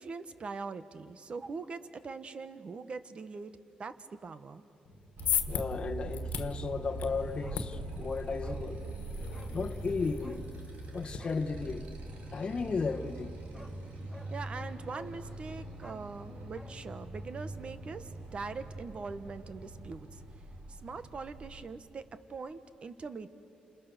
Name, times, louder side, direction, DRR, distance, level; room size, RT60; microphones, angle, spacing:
voice 1, 0.0-4.6 14.3-20.2 20.7-23.3, right 4 dB, 45° right, 1.3 m, -42 dB
sound 1, 4.9-11.2, left 8 dB, 85° left, 1.5 m, -38 dB
Motorcycle, 5.2-21.6, right 2 dB, 75° right, 3.2 m, -43 dB
voice 2, 5.5-8.8 9.5-10.4 10.9-11.9 12.3-13.3, left 4 dB, 35° left, 1.2 m, -34 dB
Bark, 7.4-7.7 8.0-8.1 8.4-8.7 9.3-9.6 10.2-10.5 11.1-11.4 13.0-13.1 13.5-13.8 14.1-14.3 14.9-15.2 15.7-16.8 17.1-17.2, right 1 dB, 10° right, 1.6 m, -50 dB
29.0 x 28.0 x 6.9 m
cardioid pair, 110°, 3 cm